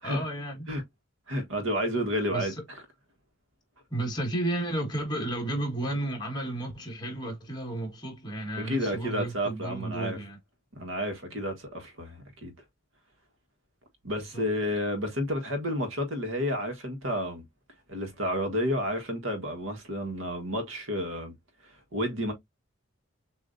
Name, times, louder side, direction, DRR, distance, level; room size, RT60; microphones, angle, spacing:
voice 1, 0.0-0.7 2.3-2.6 3.9-10.4 14.3-14.4, right 1 dB, 20° left, 1.7 m, -33 dB
voice 2, 1.3-2.5 8.5-10.2 10.7-12.5 14.0-17.4 17.9-21.3 21.9-22.3, equal, 75° right, 1.5 m, -31 dB
6.6 x 2.8 x 2.6 m
head